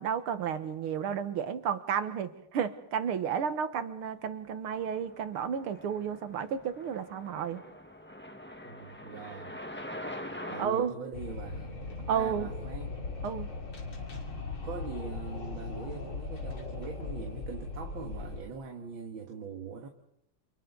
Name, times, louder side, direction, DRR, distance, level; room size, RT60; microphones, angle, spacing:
voice 1, 0.0-7.6 10.6-11.0 12.1-12.5 13.2-13.5, right 7 dB, 85° right, 10 dB, 2.2 m, -32 dB
sound 1, 4.5-10.7, left 1 dB, 5° left, 1.1 m, -44 dB
voice 2, 8.6-9.8 10.5-11.7 12.1-13.0 14.6-19.9, right 5 dB, 70° right, 3 dB, 2.4 m, -42 dB
Wind, 11.1-18.4, left 3 dB, 75° left, 3.7 m, -38 dB
30.0 x 28.5 x 4.0 m, 0.77 s
omnidirectional pair, 2.3 m